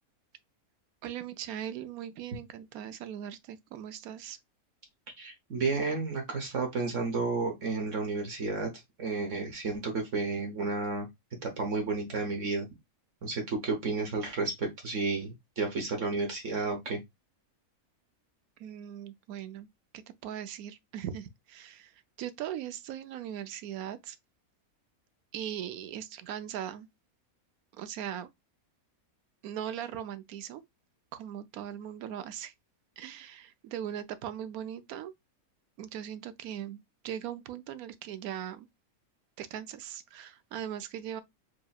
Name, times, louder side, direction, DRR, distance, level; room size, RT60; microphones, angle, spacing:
voice 1, 1.0-4.4 18.6-19.7 19.9-24.2 25.3-26.9 27.7-28.3 29.4-30.6 31.1-32.5 33.0-35.1 35.8-38.7 39.4-41.2, right 10 dB, 80° right, 1.1 m, -39 dB
voice 2, 5.2-8.7 9.0-11.1 11.4-12.7 13.2-17.0, right 3 dB, 60° right, 1.4 m, -32 dB
4.9 x 2.9 x 2.3 m
omnidirectional pair, 1.5 m